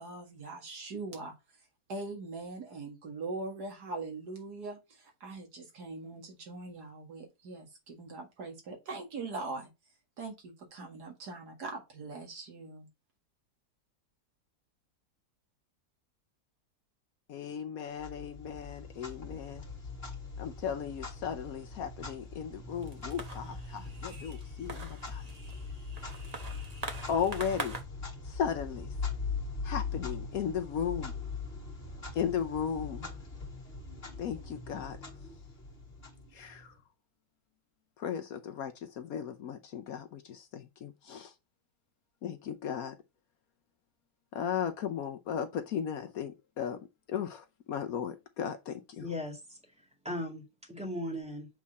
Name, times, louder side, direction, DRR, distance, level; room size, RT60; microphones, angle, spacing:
voice 1, 0.0-1.3 1.9-9.7 10.2-12.9, right 3 dB, 70° right, 2.3 m, -41 dB
voice 2, 17.3-19.6 20.4-25.2 27.1-27.7 28.3-28.9 29.6-31.1 32.1-33.1 34.2-35.0 36.3-36.7 38.0-41.3 42.2-43.0 44.3-46.8 47.1-49.0, left 8 dB, 65° left, 1.0 m, -36 dB
Clock, 18.0-36.7, left 4 dB, 35° left, 2.0 m, -41 dB
sound 1, 22.8-27.8, right 3 dB, 25° right, 1.0 m, -43 dB
voice 3, 49.0-49.6 50.0-51.5, left 1 dB, 5° right, 2.1 m, -37 dB
7.4 x 3.6 x 4.1 m
omnidirectional pair, 1.8 m